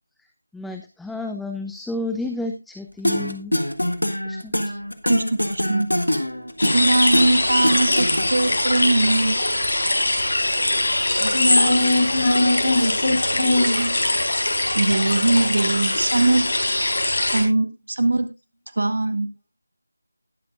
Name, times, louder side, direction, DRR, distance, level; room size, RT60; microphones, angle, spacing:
voice 1, 0.5-3.5 4.2-4.7, left 2 dB, ahead, 5 dB, 0.4 m, -31 dB
sound 1, 3.0-8.6, left 1 dB, 90° left, 1.6 m, -24 dB
voice 2, 5.0-5.9 6.6-9.4 14.7-16.4 17.3-18.3 18.7-19.3, right 2 dB, 65° right, 9 dB, 1.7 m, -21 dB
sound 2, 6.6-17.4, left 1 dB, 60° left, 4.2 m, -22 dB
voice 3, 11.2-13.9, left 1 dB, 35° left, 1 dB, 4.9 m, -21 dB
19.5 x 6.8 x 2.5 m, 0.24 s
figure-of-eight pair, 165°, 0 cm